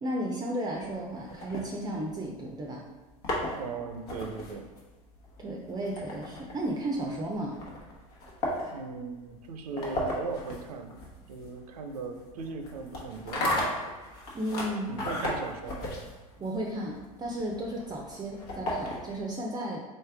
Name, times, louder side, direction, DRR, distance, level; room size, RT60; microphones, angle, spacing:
voice 1, 0.0-2.8 5.4-7.6 14.3-15.0 16.4-19.8, right 1 dB, 20° right, 0 dB, 0.5 m, -34 dB
sound 1, 0.7-2.4 3.0-19.3, left 1 dB, 80° left, 1.2 m, -36 dB
voice 2, 3.5-4.7 8.7-11.0 11.3-13.5 14.9-15.9, right 4 dB, 90° right, 6 dB, 0.6 m, -38 dB
4.1 x 3.3 x 3.4 m, 1.2 s
hypercardioid pair, 105°, 19 cm